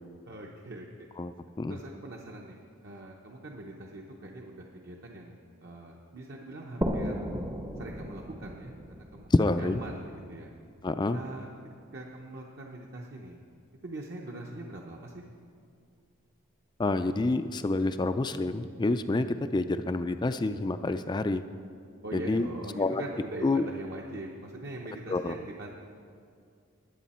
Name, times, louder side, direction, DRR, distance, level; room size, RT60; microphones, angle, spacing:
voice 1, 0.3-1.1 1.7-7.2 7.8-10.6 11.1-11.5 11.9-13.4 13.8-15.2 22.0-25.8, right 1 dB, 55° right, -1 dB, 0.9 m, -42 dB
sound 1, 6.8-10.3, equal, 15° right, 0.6 m, -35 dB
voice 2, 9.3-9.8 10.8-11.2 16.8-21.4 22.1-22.5 22.8-23.0 23.4-23.6 25.1-25.3, left 2 dB, 20° left, 10 dB, 0.3 m, -27 dB
20.0 x 8.3 x 4.3 m, 2.3 s
head